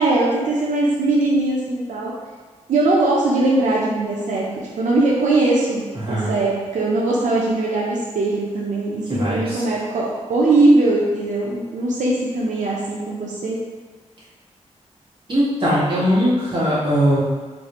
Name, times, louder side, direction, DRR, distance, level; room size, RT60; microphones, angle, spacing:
voice 1, 0.0-2.1 2.7-4.4 4.8-13.6, right 2 dB, 85° right, -5 dB, 0.6 m, -20 dB
voice 2, 9.1-9.6 15.3-17.2, equal, 40° right, -8 dB, 1.3 m, -20 dB
3.3 x 2.4 x 4.1 m, 1.4 s
wide cardioid pair, 130°, 12 cm